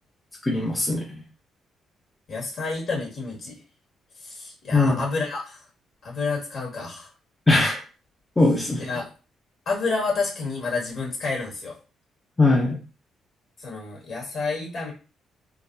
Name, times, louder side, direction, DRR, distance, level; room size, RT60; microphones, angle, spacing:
voice 1, 0.4-1.1 4.7-5.0 7.5-7.8 8.4-8.9 12.4-12.8, left 2 dB, 15° left, -2 dB, 0.8 m, -20 dB
voice 2, 2.3-3.6 4.2-5.6 6.0-7.1 8.8-9.1 9.7-11.8 13.6-14.9, left 4 dB, 55° left, -2 dB, 1.8 m, -29 dB
3.8 x 2.2 x 2.7 m, 0.34 s
cardioid pair, 90°, 0 cm